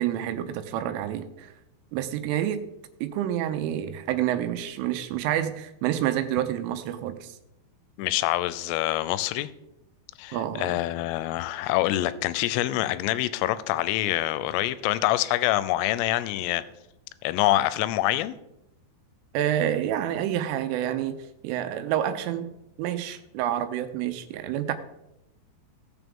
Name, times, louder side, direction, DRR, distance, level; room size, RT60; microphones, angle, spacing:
voice 1, 0.0-1.5 1.9-2.7 3.0-7.4 10.3-10.8 19.3-21.2 21.4-22.5 22.8-24.7, right 11 dB, 85° right, 9 dB, 3.2 m, -28 dB
voice 2, 8.0-9.5 10.2-16.6 17.2-18.4, left 15 dB, 85° left, 15 dB, 3.1 m, -26 dB
18.0 x 7.1 x 3.6 m, 0.87 s
omnidirectional pair, 5.9 m